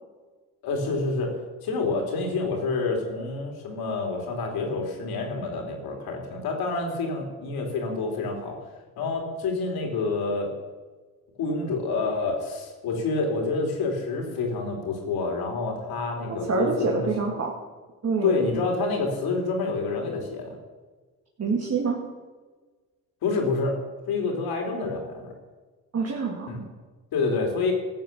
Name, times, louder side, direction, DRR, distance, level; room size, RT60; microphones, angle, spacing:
voice 1, 0.6-1.3 1.6-8.6 9.0-10.5 11.4-17.1 18.2-20.6 23.2-23.7 24.1-25.3 26.5-26.6 27.1-27.7, left 3 dB, 75° left, 2 dB, 3.3 m, -28 dB
voice 2, 16.5-17.5 18.0-18.4 21.4-22.0 25.9-26.5, right 4 dB, 40° right, -1 dB, 2.2 m, -26 dB
14.5 x 7.4 x 6.9 m, 1.3 s
supercardioid pair, 65°, 38 cm